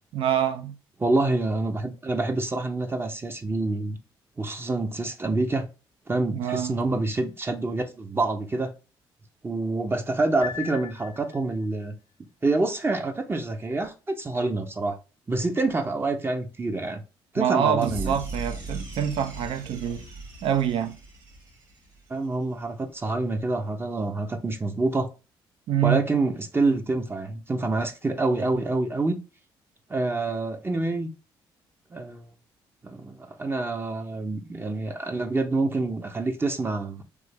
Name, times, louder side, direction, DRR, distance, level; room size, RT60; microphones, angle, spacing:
voice 1, 0.1-0.8 6.3-6.8 17.4-20.0 20.4-21.0 25.7-26.0, right 9 dB, 65° right, 0.5 m, -26 dB
voice 2, 1.0-4.0 4.4-5.7 6.1-8.7 9.4-11.9 12.4-15.0 15.3-17.0 17.3-18.2 22.1-25.1 25.8-29.2 29.9-31.1 31.9-32.3 32.8-37.0, right 2 dB, 25° right, 0.6 m, -27 dB
Piano, 10.4-11.7, left 9 dB, 50° left, 0.4 m, -38 dB
sound 1, 17.8-22.1, right 2 dB, 45° right, 1.6 m, -38 dB
3.3 x 2.0 x 3.2 m
supercardioid pair, 65°, 10 cm